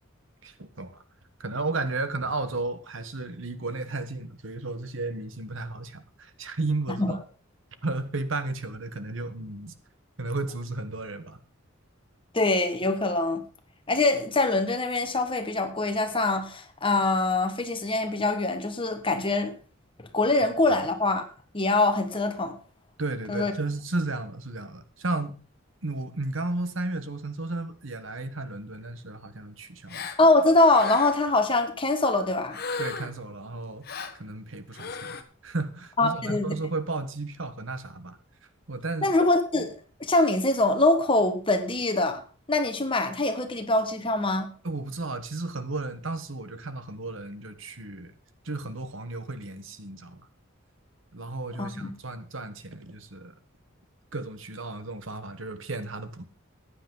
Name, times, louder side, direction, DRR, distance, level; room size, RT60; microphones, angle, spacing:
voice 1, 0.4-1.0 1.4-7.2 7.8-9.7 10.2-11.4 23.0-25.4 25.8-30.1 32.8-35.2 35.4-38.2 38.7-39.1 44.6-48.1 48.4-50.2 51.1-53.3 54.1-56.2, right 2 dB, 65° right, 1.3 m, -33 dB
voice 2, 12.3-13.4 13.9-19.5 20.0-21.2 21.5-22.6 23.3-23.5 30.2-32.6 36.0-36.5 39.0-39.7 40.0-42.2 42.5-44.5 51.6-51.9, left 2 dB, 25° left, 1.5 m, -23 dB
Gasp, 29.9-30.2 30.7-31.3 32.5-33.2 33.8-34.2 34.7-35.2, left 5 dB, 50° left, 1.2 m, -35 dB
15.0 x 10.0 x 3.9 m
head